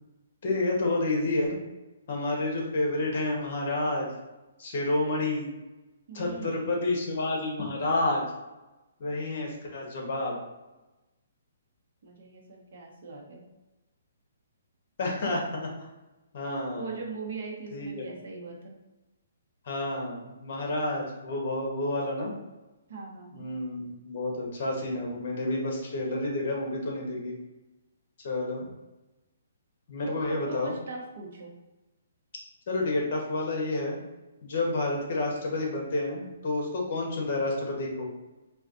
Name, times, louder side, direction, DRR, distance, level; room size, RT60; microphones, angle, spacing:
voice 1, 0.4-1.5 2.1-4.1 4.6-5.5 6.1-8.2 9.0-10.4 15.0-15.9 16.3-16.9 17.7-18.0 19.6-22.3 23.3-27.3 28.2-28.6 29.9-30.7 32.7-34.0 34.4-38.1, left 2 dB, 50° left, 0 dB, 1.0 m, -29 dB
voice 2, 6.1-6.7 12.0-13.4 16.8-18.7 22.9-23.5 30.0-31.5, right 4 dB, 55° right, -1 dB, 0.8 m, -40 dB
4.3 x 2.3 x 2.5 m, 1.1 s
hypercardioid pair, 165°, 0 cm